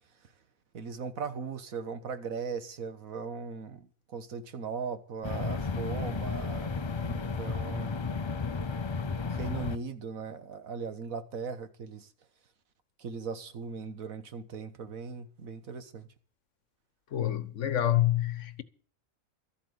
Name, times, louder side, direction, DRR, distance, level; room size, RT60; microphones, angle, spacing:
voice 1, 0.7-8.0 9.2-12.1 13.0-16.1, right 5 dB, 80° right, 1.7 m, -39 dB
sound 1, 5.2-9.8, left 4 dB, 35° left, 0.4 m, -33 dB
voice 2, 17.1-18.6, left 12 dB, 65° left, 1.3 m, -27 dB
13.5 x 8.7 x 7.9 m
omnidirectional pair, 1.4 m